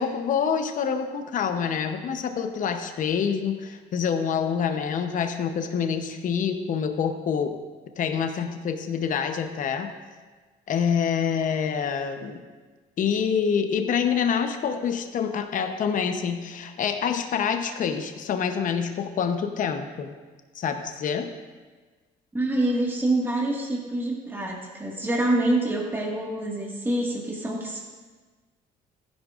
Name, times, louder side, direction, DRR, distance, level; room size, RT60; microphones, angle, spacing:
voice 1, 0.0-7.6 8.0-9.9 10.7-12.4 13.0-20.1 20.5-21.3, left 7 dB, 50° left, 7 dB, 0.9 m, -26 dB
voice 2, 22.3-27.8, right 1 dB, 10° right, -2 dB, 1.8 m, -26 dB
15.0 x 10.5 x 2.5 m, 1.4 s
cardioid pair, 110°, 17 cm